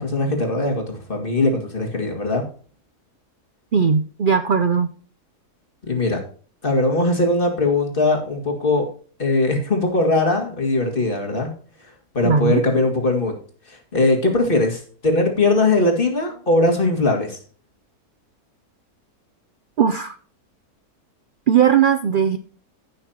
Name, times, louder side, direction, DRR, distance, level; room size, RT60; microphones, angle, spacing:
voice 1, 0.0-2.4 5.9-6.2 6.6-8.9 9.2-11.5 12.1-13.4 13.7-17.4, left 2 dB, 35° left, 2 dB, 2.4 m, -20 dB
voice 2, 3.7-4.9 12.2-12.6 19.8-20.1 21.5-22.4, right 7 dB, 75° right, 9 dB, 0.4 m, -18 dB
15.5 x 6.5 x 2.9 m, 0.41 s
omnidirectional pair, 1.6 m